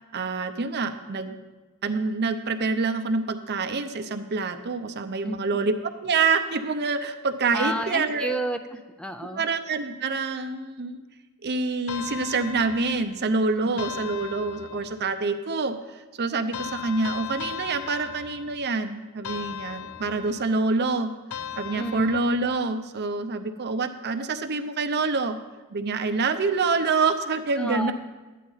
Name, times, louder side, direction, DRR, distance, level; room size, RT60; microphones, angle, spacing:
voice 1, 0.1-1.4 1.8-5.7 6.0-8.4 9.3-11.0 11.4-21.1 21.6-25.4 25.7-27.9, right 4 dB, 50° right, 8 dB, 0.6 m, -26 dB
voice 2, 5.2-5.6 7.5-9.4 21.7-22.2 27.6-27.9, right 1 dB, 5° left, 7 dB, 0.4 m, -31 dB
sound 1, 11.9-13.2 13.8-15.1 16.5-18.7 19.2-20.5 21.3-22.6, left 9 dB, 85° left, 0.5 m, -38 dB
11.5 x 9.2 x 4.0 m, 1.2 s
head